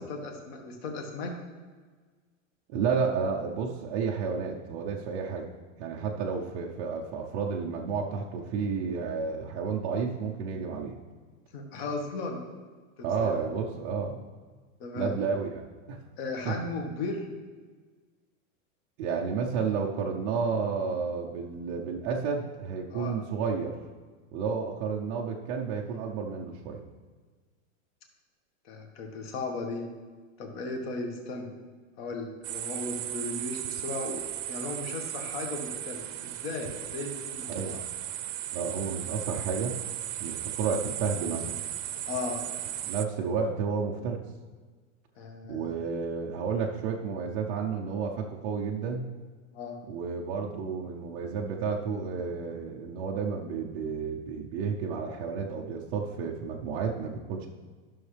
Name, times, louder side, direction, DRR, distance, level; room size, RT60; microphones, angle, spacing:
voice 1, 0.0-1.4 11.5-12.4 13.0-13.3 14.8-15.1 16.2-17.3 22.9-23.2 28.6-29.9 30.4-31.5 32.0-37.8 42.1-42.4 45.2-45.8 49.5-49.8, left 3 dB, 45° left, 3 dB, 1.5 m, -36 dB
voice 2, 2.7-5.5 5.8-11.0 13.0-14.2 14.9-16.0 16.5-16.6 19.0-23.7 24.3-26.8 37.5-37.8 38.5-39.8 40.2-41.6 42.9-44.2 45.5-49.1 49.9-57.5, right 5 dB, 25° right, -2 dB, 0.4 m, -31 dB
sound 1, 32.4-43.1, right 12 dB, 70° right, 0.7 m, -36 dB
12.5 x 6.3 x 3.3 m, 1.4 s
supercardioid pair, 160°, 40 cm